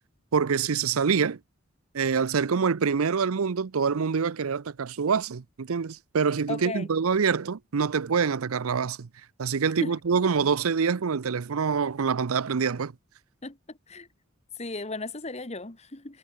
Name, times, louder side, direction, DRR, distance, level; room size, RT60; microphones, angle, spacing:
voice 1, 0.3-1.4 1.9-9.1 9.4-12.9, right 6 dB, 85° right, 0.6 m, -25 dB
voice 2, 6.5-6.9 9.8-10.0 13.4-14.1 14.6-16.2, left 2 dB, 30° left, 1.4 m, -36 dB
head